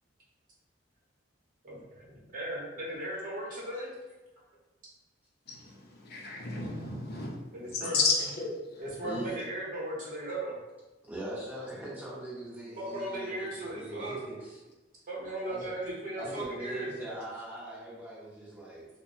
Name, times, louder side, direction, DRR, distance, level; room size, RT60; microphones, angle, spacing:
voice 1, 1.6-3.9 7.5-8.0 8.8-10.6 12.8-14.1 15.1-16.9, right 1 dB, 45° right, -6 dB, 0.9 m, -37 dB
voice 2, 5.5-8.5, left 4 dB, 55° left, -2 dB, 0.5 m, -32 dB
voice 3, 11.1-14.6 15.5-15.7 16.2-18.9, right 1 dB, 10° right, -6 dB, 0.7 m, -40 dB
2.1 x 2.0 x 3.8 m, 1.1 s
head